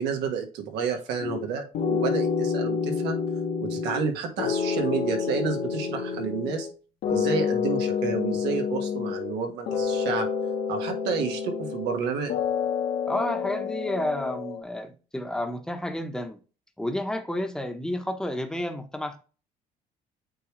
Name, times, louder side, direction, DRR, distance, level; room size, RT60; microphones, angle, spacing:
voice 1, 0.0-3.2 3.6-6.7 7.1-10.3 10.7-12.3, right 6 dB, 85° right, 1.6 m, -30 dB
sound 1, 1.2-1.4 1.7-4.1 4.4-6.7 7.0-9.4 9.7-12.0 12.3-14.6, left 6 dB, 75° left, 1.8 m, -28 dB
voice 2, 13.1-16.4 16.8-19.2, left 1 dB, 5° left, 1.0 m, -31 dB
8.8 x 3.4 x 3.2 m
cardioid pair, 110°, 17 cm